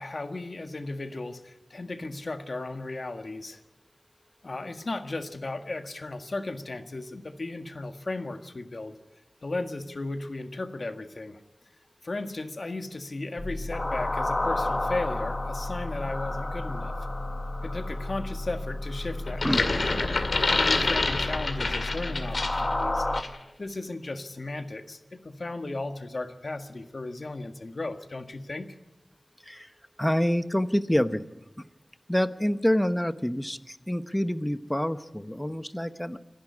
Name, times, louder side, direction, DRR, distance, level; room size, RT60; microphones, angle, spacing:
voice 1, 0.0-3.6 4.4-8.9 9.4-11.4 12.0-16.9 17.6-19.8 20.5-23.1 23.6-25.0 25.2-28.7, left 2 dB, 60° left, 7 dB, 1.7 m, -35 dB
sound 1, 13.4-23.2, left 2 dB, 35° left, 1.7 m, -31 dB
sound 2, 19.3-22.7 23.1-23.4, left 3 dB, 80° left, 2.3 m, -27 dB
voice 2, 30.0-31.2 32.1-36.2, equal, 10° left, 11 dB, 1.0 m, -27 dB
27.5 x 11.5 x 9.7 m, 0.98 s
wide cardioid pair, 65°, 0 cm